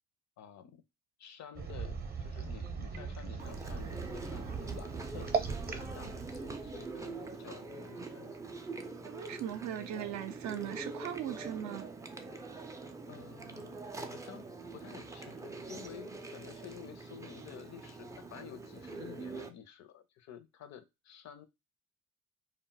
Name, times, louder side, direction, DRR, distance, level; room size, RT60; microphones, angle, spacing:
voice 1, 0.4-0.8 1.2-8.4 13.1-14.4 14.7-21.5, left 9 dB, 65° left, 0.5 m, -51 dB
sound 1, 1.5-7.4, right 5 dB, 30° right, 0.7 m, -39 dB
Chewing mastication, 3.4-19.5, right 3 dB, 10° right, 0.3 m, -44 dB
voice 2, 9.0-11.9, right 10 dB, 70° right, 0.5 m, -39 dB
2.2 x 2.0 x 3.8 m
cardioid pair, 90°, 30 cm